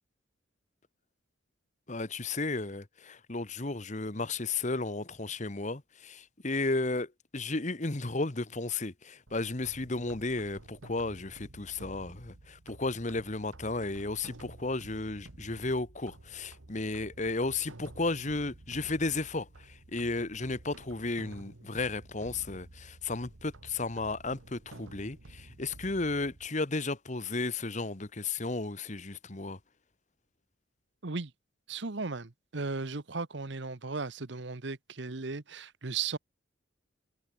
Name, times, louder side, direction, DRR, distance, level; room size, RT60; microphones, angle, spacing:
voice 1, 1.9-29.6, left 3 dB, 35° left, 1.3 m, -34 dB
sound 1, 9.3-26.5, right 2 dB, 90° right, 1.6 m, -51 dB
voice 2, 31.7-36.2, right 4 dB, 60° right, 1.1 m, -36 dB
head